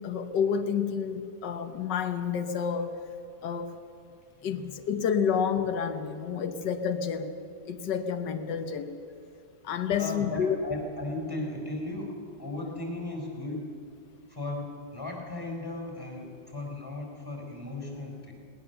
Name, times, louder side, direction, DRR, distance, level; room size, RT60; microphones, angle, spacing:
voice 1, 0.0-2.9 3.4-3.7 4.4-7.3 7.7-9.0 9.6-10.6, left 7 dB, 85° left, 9 dB, 1.7 m, -29 dB
voice 2, 4.4-4.8 10.0-13.7 14.3-18.3, left 2 dB, 10° left, 1 dB, 4.3 m, -36 dB
20.5 x 19.0 x 6.9 m, 2.5 s
omnidirectional pair, 1.8 m